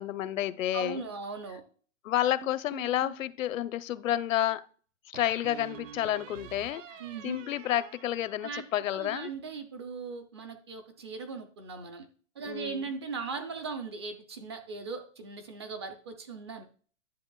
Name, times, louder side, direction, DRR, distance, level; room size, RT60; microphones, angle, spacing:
voice 1, 0.0-1.0 2.0-4.6 5.1-9.3 12.4-12.9, left 12 dB, 85° left, 0.6 m, -30 dB
voice 2, 0.7-1.6 7.0-7.4 8.4-8.7 8.9-12.1 12.4-16.6, right 4 dB, 20° right, 0.4 m, -38 dB
sound 1, 2.4-3.3 5.1-8.9, right 9 dB, 75° right, 0.8 m, -47 dB
10.5 x 6.9 x 2.3 m
hypercardioid pair, 160°, 39 cm